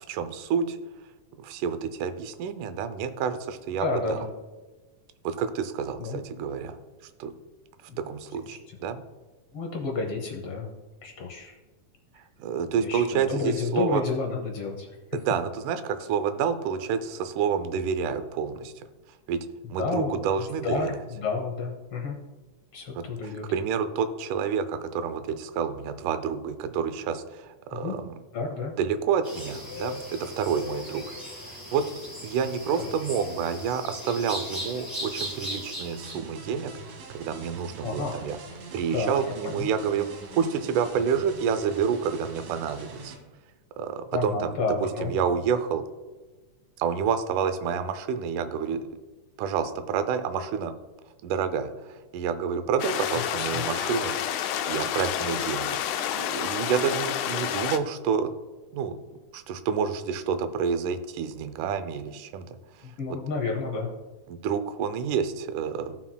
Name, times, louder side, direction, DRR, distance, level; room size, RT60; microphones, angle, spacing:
voice 1, 0.1-0.8 1.4-4.2 5.2-6.8 7.2-7.3 8.0-9.0 12.4-14.0 15.1-18.7 19.3-19.4 19.7-21.0 23.0-28.2 28.8-31.1 31.4-31.9 32.2-36.7 37.1-38.4 38.7-43.2 43.8-45.8 46.8-48.9 49.4-50.7 51.2-58.3 58.7-59.0 59.3-63.2 64.3-66.0, right 7 dB, 90° right, 10 dB, 2.2 m, -29 dB
voice 2, 3.8-4.2 6.0-6.2 7.9-8.0 9.5-10.7 11.0-11.6 12.8-14.9 19.8-20.1 20.6-22.2 22.7-23.4 27.7-28.0 28.3-28.7 37.8-38.1 38.9-39.1 39.4-39.7 44.1-45.2 53.5-53.6 62.8-63.9, left 3 dB, 65° left, 1 dB, 1.5 m, -30 dB
sound 1, 29.2-36.2, equal, 25° right, 0.4 m, -38 dB
sound 2, 36.0-43.2, right 3 dB, 70° right, 2.8 m, -44 dB
sound 3, 52.8-57.8, left 10 dB, 80° left, 1.8 m, -29 dB
17.0 x 5.9 x 2.2 m, 1.2 s
omnidirectional pair, 3.5 m